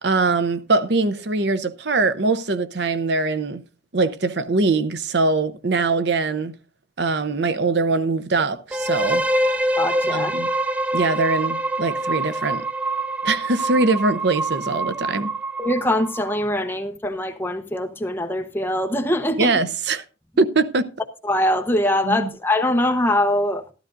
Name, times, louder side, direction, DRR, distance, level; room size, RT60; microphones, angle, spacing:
voice 1, 0.0-3.6 3.9-6.5 7.0-9.5 10.1-10.5 10.9-12.6 13.2-15.3 19.4-20.0 20.4-20.9 22.0-22.3, right 3 dB, 60° right, 0.7 m, -22 dB
sound 1, 8.7-16.5, right 1 dB, 5° right, 0.4 m, -25 dB
voice 2, 9.8-10.3 15.6-19.5 21.2-23.6, left 1 dB, 10° left, 0.9 m, -22 dB
13.0 x 13.0 x 2.6 m
head